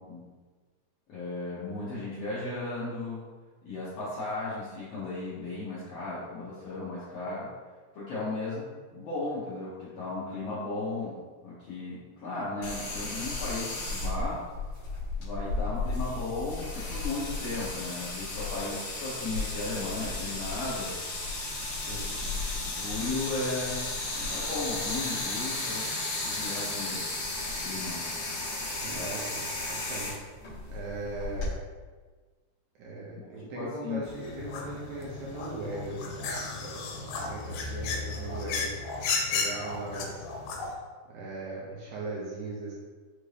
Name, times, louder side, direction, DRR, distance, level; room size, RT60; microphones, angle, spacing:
voice 1, 1.1-3.3 3.6-7.5 7.9-14.4 15.2-20.9 22.2-22.3 22.6-25.9 26.2-27.0 27.6-28.1 33.1-33.3 33.5-34.0, left 2 dB, 70° left, -10 dB, 1.5 m, -35 dB
sound 1, 12.6-31.5, left 2 dB, 55° left, 1.4 m, -34 dB
voice 2, 28.8-30.1 30.7-31.6 32.8-40.3 41.1-42.7, right 2 dB, 75° right, -4 dB, 1.9 m, -39 dB
sound 2, 34.0-40.7, left 4 dB, 90° left, 2.3 m, -34 dB
5.6 x 2.5 x 3.3 m, 1.4 s
omnidirectional pair, 3.9 m